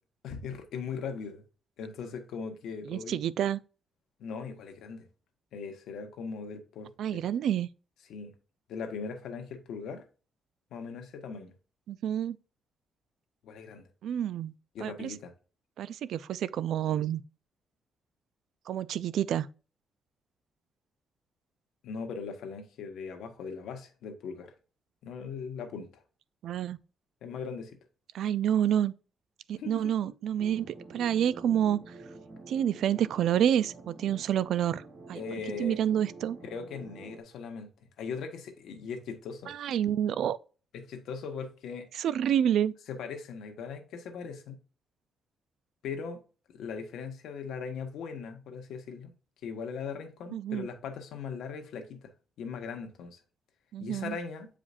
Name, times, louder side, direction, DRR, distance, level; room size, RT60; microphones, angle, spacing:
voice 1, 0.2-1.4 1.8-3.2 4.2-5.1 5.5-6.9 8.1-8.3 8.7-10.0 10.7-11.5 13.4-13.9 14.7-15.3 21.8-24.5 25.0-26.0 27.2-27.8 29.6-30.2 35.1-35.8 36.5-37.7 38.0-39.5 40.7-41.9 42.9-44.6 45.8-46.2 46.5-49.1 49.4-52.1 52.4-53.2 53.8-54.5, left 5 dB, 75° left, 1.3 m, -39 dB
voice 2, 2.9-3.6 7.0-7.7 11.9-12.4 14.0-14.5 14.8-15.1 15.8-17.2 18.7-19.5 26.4-26.8 28.1-28.9 29.5-31.9 32.5-34.8 35.1-35.2 35.6-36.4 39.5-40.4 41.9-42.7 50.3-50.7 53.7-54.2, right 10 dB, 65° right, 0.3 m, -28 dB
sound 1, 30.4-37.2, right 3 dB, 30° right, 1.2 m, -48 dB
8.4 x 5.0 x 2.5 m
cardioid pair, 180°, 0 cm